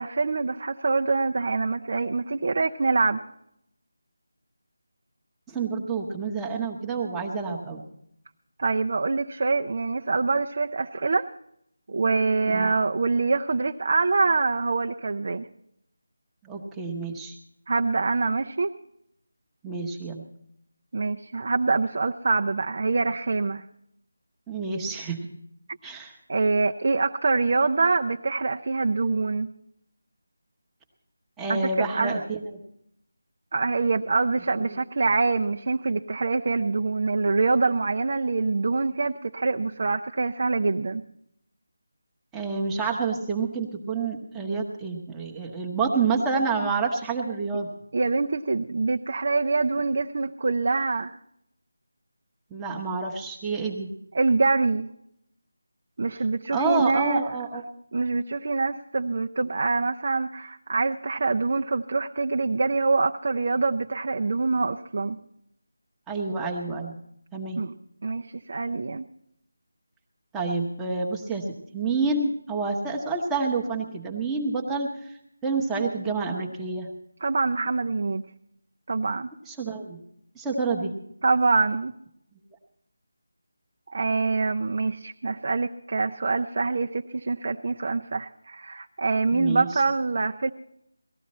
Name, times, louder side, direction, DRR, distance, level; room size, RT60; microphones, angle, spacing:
voice 1, 0.0-3.2 8.6-11.3 11.9-15.5 17.7-18.7 20.9-23.7 26.3-29.5 31.5-32.2 33.5-41.0 47.9-51.2 54.1-54.9 56.0-57.2 57.9-65.2 67.6-67.7 68.0-69.1 77.2-78.2 78.9-79.3 81.2-81.9 83.9-90.5, right 3 dB, 45° right, 4 dB, 0.5 m, -25 dB
voice 2, 5.5-7.8 12.4-12.7 16.4-17.4 19.6-20.2 24.5-25.2 25.8-26.1 31.4-32.4 34.6-34.7 42.3-47.7 52.5-53.9 56.5-57.6 66.1-67.0 67.3-67.6 70.3-71.4 71.7-76.9 79.5-80.0 80.3-80.9 89.3-89.7, right 4 dB, 5° right, -2 dB, 1.0 m, -28 dB
18.0 x 14.0 x 4.2 m, 0.74 s
figure-of-eight pair, 175°, 0 cm